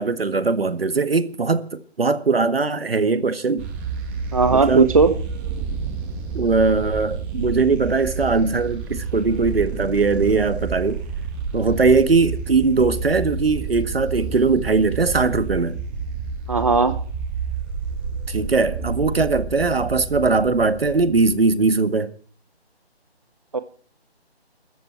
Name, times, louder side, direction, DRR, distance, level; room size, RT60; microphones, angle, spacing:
voice 1, 0.0-3.7 4.5-4.9 6.3-11.0 11.5-15.8 18.3-22.1, right 4 dB, 65° right, 1.8 m, -20 dB
sound 1, 3.6-21.6, right 5 dB, 10° right, 1.4 m, -30 dB
voice 2, 4.3-5.2 16.5-17.0 23.5-23.6, right 4 dB, 35° right, 0.7 m, -17 dB
23.0 x 14.0 x 4.5 m
figure-of-eight pair, 160°, 32 cm